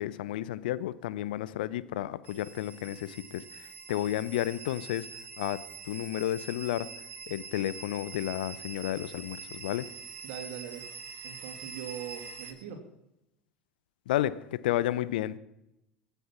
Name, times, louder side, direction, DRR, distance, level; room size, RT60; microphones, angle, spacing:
voice 1, 0.0-5.1 5.4-6.9 7.3-9.9 14.1-15.4, left 13 dB, 70° left, 17 dB, 0.8 m, -32 dB
sound 1, 2.2-12.5, right 5 dB, 40° right, 3.5 m, -45 dB
voice 2, 10.2-11.0 11.2-12.8, right 8 dB, 60° right, 5 dB, 2.8 m, -41 dB
24.0 x 8.2 x 5.9 m, 0.86 s
figure-of-eight pair, 70°, 5 cm